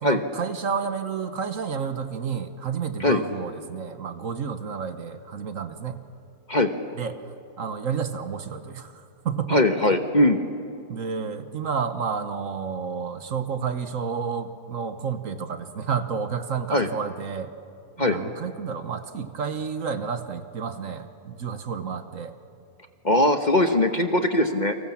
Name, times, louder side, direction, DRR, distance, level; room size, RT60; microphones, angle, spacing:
voice 1, 0.0-6.0 7.0-7.2 7.6-9.6 10.9-17.5 18.0-22.3, right 6 dB, 60° right, 10 dB, 1.4 m, -30 dB
voice 2, 9.5-10.4 16.7-16.9 18.0-18.2 23.0-24.8, left 1 dB, 30° left, 7 dB, 1.1 m, -20 dB
29.5 x 24.5 x 7.2 m, 2.5 s
omnidirectional pair, 1.7 m